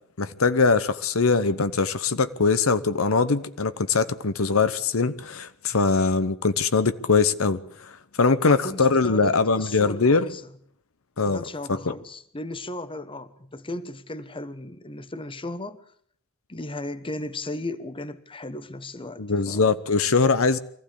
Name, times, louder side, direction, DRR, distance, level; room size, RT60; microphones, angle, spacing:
voice 1, 0.2-7.9 8.2-10.3 11.2-11.4 11.7-11.9 19.2-20.6, left 4 dB, 70° left, 0.9 m, -22 dB
voice 2, 8.5-10.4 11.2-15.8 16.5-19.7, left 2 dB, 25° left, 1.1 m, -36 dB
24.0 x 15.0 x 8.5 m
head